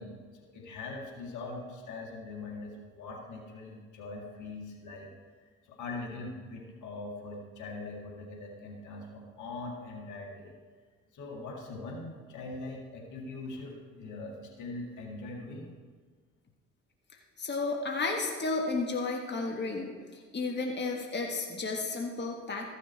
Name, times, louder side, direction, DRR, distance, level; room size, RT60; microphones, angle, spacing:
voice 1, 0.0-5.1 5.4-10.6 11.1-15.7, left 3 dB, 65° left, 0 dB, 2.0 m, -42 dB
voice 2, 17.4-22.7, left 3 dB, 35° left, 1 dB, 1.5 m, -33 dB
14.0 x 6.4 x 4.5 m, 1.5 s
hypercardioid pair, 55°, 32 cm